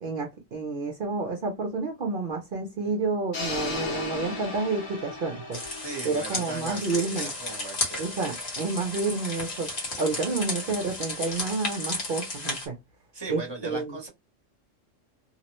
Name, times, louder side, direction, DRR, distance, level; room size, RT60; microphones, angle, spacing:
voice 1, 0.0-5.6 6.0-7.3 8.0-9.7 10.0-12.7 13.3-14.0, right 3 dB, 55° right, 0.7 m, -29 dB
sound 1, 3.3-7.4, left 2 dB, 85° left, 1.2 m, -35 dB
sound 2, 5.5-12.7, left 2 dB, 55° left, 1.3 m, -33 dB
voice 2, 5.8-8.2 13.1-14.1, right 2 dB, 25° right, 0.9 m, -38 dB
2.9 x 2.0 x 2.9 m
omnidirectional pair, 1.3 m